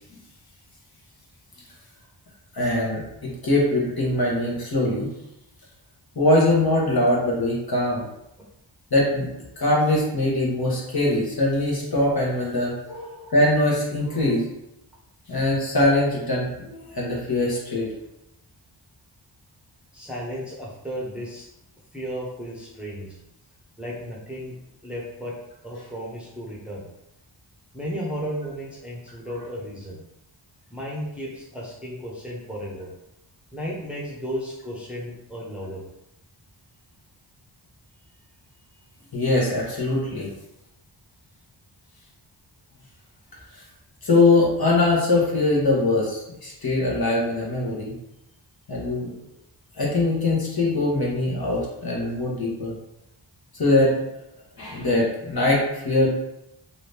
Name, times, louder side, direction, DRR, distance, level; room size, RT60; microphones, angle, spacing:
voice 1, 2.5-5.1 6.1-8.1 8.9-9.3 9.6-14.4 15.3-17.9 39.1-40.3 44.0-47.9 48.7-49.1 49.8-52.7 53.5-53.9 54.6-56.1, left 2 dB, 50° left, -4 dB, 1.2 m, -22 dB
voice 2, 19.9-21.5 21.9-23.2 23.8-24.5 24.8-25.3 25.6-26.8 27.7-30.0 30.7-32.9 33.5-35.8, equal, ahead, -5 dB, 0.9 m, -34 dB
2.9 x 2.7 x 3.4 m, 0.85 s
cardioid pair, 55°, 49 cm